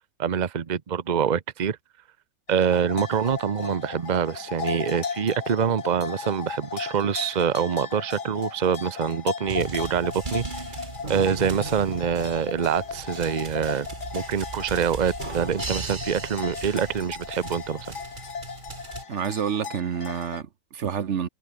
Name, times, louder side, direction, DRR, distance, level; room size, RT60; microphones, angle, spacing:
voice 1, 0.2-1.8 2.5-10.6 11.1-13.9 14.1-18.0, right 7 dB, 75° right, 0.4 m, -25 dB
sound 1, 2.5-20.4, left 5 dB, 55° left, 2.7 m, -36 dB
sound 2, 9.5-19.0, right 3 dB, 25° right, 2.1 m, -37 dB
voice 2, 19.1-21.3, right 8 dB, 45° right, 1.0 m, -28 dB
omnidirectional pair, 2.1 m